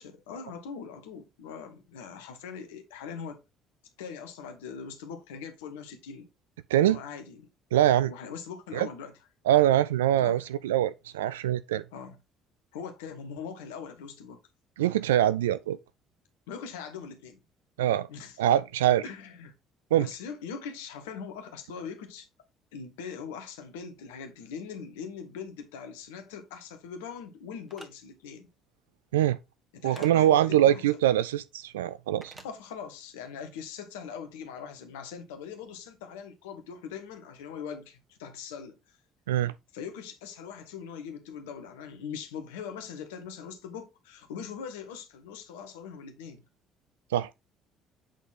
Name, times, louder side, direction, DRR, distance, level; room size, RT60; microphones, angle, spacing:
voice 1, 0.0-3.4 4.0-6.3 6.8-7.4 8.1-9.1 10.2-10.4 11.9-12.2 12.7-14.4 16.5-17.4 18.1-18.4 19.0-19.5 19.9-22.3 22.7-28.5 29.7-31.0 32.4-38.8 39.7-46.4, left 6 dB, 80° left, 1.3 m, -41 dB
voice 2, 7.7-8.1 8.7-8.9 9.5-11.8 14.8-15.8 17.8-18.1 18.4-19.0 19.9-20.1 29.1-29.4 29.8-32.3 39.3-39.5 47.1-47.3, right 12 dB, 85° right, 0.4 m, -23 dB
sound 1, 27.7-27.9 29.9-30.1 32.2-32.5, right 1 dB, 20° right, 1.5 m, -47 dB
8.1 x 4.1 x 3.7 m
hypercardioid pair, 55°, 0 cm